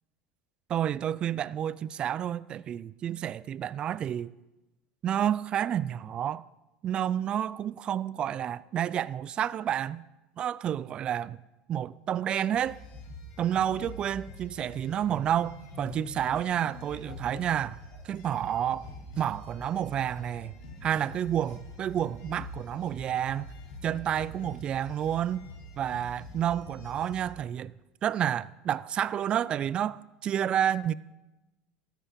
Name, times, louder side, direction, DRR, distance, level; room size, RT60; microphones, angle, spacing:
voice 1, 0.7-4.3 5.0-6.5 6.8-10.0 10.4-11.4 11.7-12.8 13.4-17.8 18.0-18.9 19.2-20.5 20.8-23.5 23.8-25.5 25.8-27.7 28.0-30.9, right 10 dB, 40° right, 0.4 m, -30 dB
sound 1, 12.5-27.3, left 1 dB, 80° left, 3.2 m, -45 dB
13.5 x 10.0 x 5.4 m
supercardioid pair, 115°, 3 cm